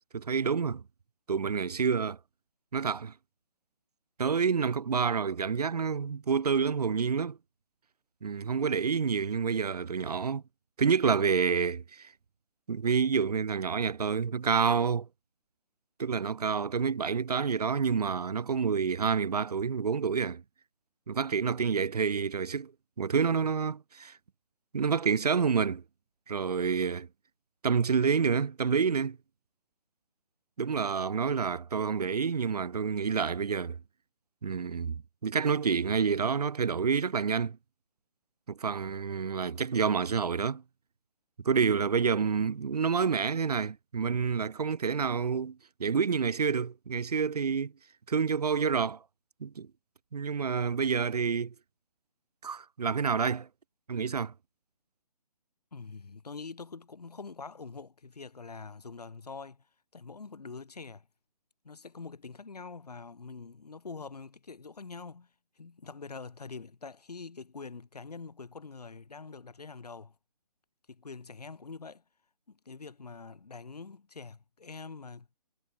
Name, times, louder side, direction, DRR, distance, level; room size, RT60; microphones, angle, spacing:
voice 1, 0.1-0.8 1.3-2.2 2.7-3.1 4.2-7.4 8.2-10.4 10.8-12.1 12.7-15.1 16.0-20.4 21.1-22.7 23.0-24.1 24.7-25.8 26.3-27.1 27.6-29.2 30.6-33.8 34.4-37.6 38.5-40.6 41.4-47.7 48.1-49.0 49.4-49.7 50.1-51.5 52.4-53.5 53.9-54.3, right 6 dB, 75° right, 1.0 m, -28 dB
voice 2, 55.7-59.7 59.9-61.1 61.6-65.3 65.6-70.1 70.9-72.0 72.5-75.3, left 4 dB, 80° left, 7.8 m, -45 dB
hypercardioid pair, 175°, 20 cm